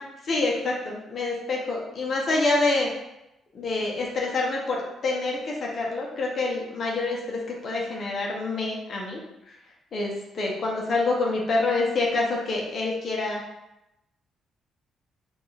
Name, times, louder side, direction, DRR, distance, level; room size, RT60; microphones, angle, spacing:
voice 1, 0.3-2.9 3.5-9.2 9.5-9.6 9.9-13.4, left 3 dB, 50° left, -1 dB, 0.8 m, -27 dB
4.3 x 2.6 x 3.3 m, 0.90 s
cardioid pair, 90°, 0 cm